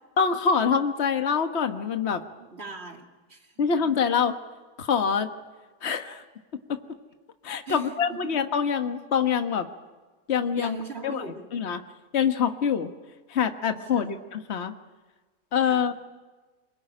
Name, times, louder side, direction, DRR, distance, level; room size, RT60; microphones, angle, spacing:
voice 1, 0.2-2.2 3.6-4.3 4.8-5.3 5.8-6.2 6.7-6.8 7.4-9.7 10.3-10.8 11.0-11.2 11.5-11.8 12.1-12.9 13.3-14.7 15.5-16.0, left 6 dB, 45° left, 7 dB, 1.5 m, -25 dB
voice 2, 2.1-3.7 7.7-8.3 10.5-11.5 13.9-14.2 15.6-15.9, right 4 dB, 45° right, 3 dB, 2.9 m, -41 dB
26.0 x 22.5 x 9.9 m, 1.3 s
omnidirectional pair, 1.6 m